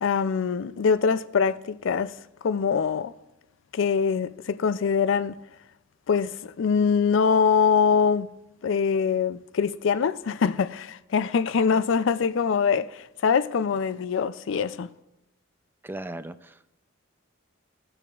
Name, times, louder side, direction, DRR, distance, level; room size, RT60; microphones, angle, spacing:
voice 1, 0.0-2.1 2.4-3.1 3.7-5.4 6.1-8.3 8.6-14.9, left 6 dB, 65° left, 0.4 m, -23 dB
voice 2, 15.8-16.8, right 1 dB, 10° right, 0.3 m, -38 dB
17.5 x 6.9 x 2.4 m
head